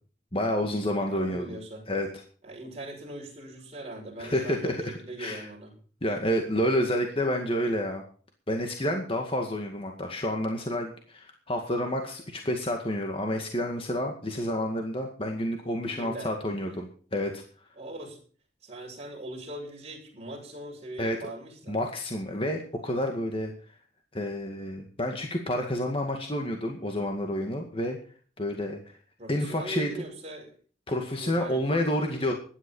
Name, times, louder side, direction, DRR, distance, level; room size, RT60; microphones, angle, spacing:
voice 1, 0.3-1.6 1.9-2.1 4.2-5.4 6.0-8.0 8.5-17.4 21.0-21.3 21.7-23.5 24.1-28.0 28.4-28.8 29.3-29.9 30.9-32.3, left 1 dB, 30° left, 3 dB, 2.1 m, -29 dB
voice 2, 1.0-1.8 2.4-5.7 15.9-16.3 17.8-18.2 18.6-21.8 29.2-30.5 31.2-31.6, right 1 dB, 35° right, 0 dB, 6.6 m, -40 dB
15.5 x 11.5 x 5.6 m, 0.43 s
head